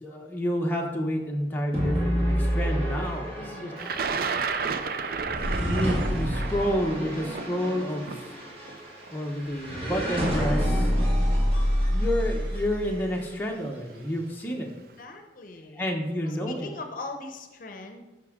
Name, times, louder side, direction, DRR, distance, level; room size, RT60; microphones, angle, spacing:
voice 1, 0.0-3.7 5.1-8.1 9.1-10.9 11.9-14.7 15.8-16.7, equal, 10° left, -1 dB, 0.8 m, -30 dB
sound 1, 1.7-13.0, equal, 30° right, 2.0 m, -28 dB
voice 2, 3.4-3.7 15.0-15.8 16.2-18.0, left 3 dB, 50° left, 5 dB, 0.7 m, -40 dB
Thunder, 3.8-9.8 10.7-10.8 11.9-12.2 12.5-13.0, right 5 dB, 55° right, 0.4 m, -32 dB
9.7 x 6.0 x 3.6 m, 1.1 s
head